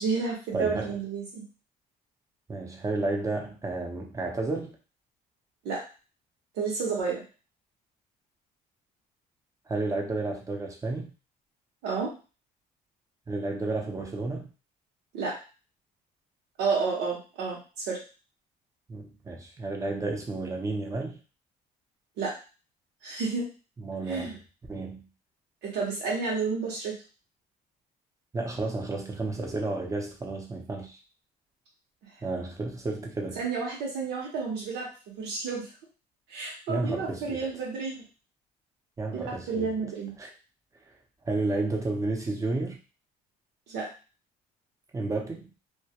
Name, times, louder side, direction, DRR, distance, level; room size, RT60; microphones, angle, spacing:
voice 1, 0.0-1.4 5.6-5.8 6.5-7.2 11.8-12.2 15.1-15.4 16.6-18.0 22.2-22.3 23.0-23.5 24.1-24.4 25.6-27.0 33.4-34.9 35.2-35.7 36.3-38.0 39.1-40.1 43.7-43.9, right 4 dB, 90° right, -3 dB, 0.8 m, -30 dB
voice 2, 0.5-1.0 2.5-4.8 9.7-11.1 13.3-14.5 18.9-21.2 23.8-24.4 24.7-25.1 28.3-31.0 32.2-33.4 36.7-37.4 39.0-39.7 40.2-40.3 41.2-42.8 44.9-45.5, right 2 dB, 20° right, 1 dB, 0.6 m, -31 dB
2.2 x 2.2 x 2.7 m, 0.33 s
cardioid pair, 110°, 17 cm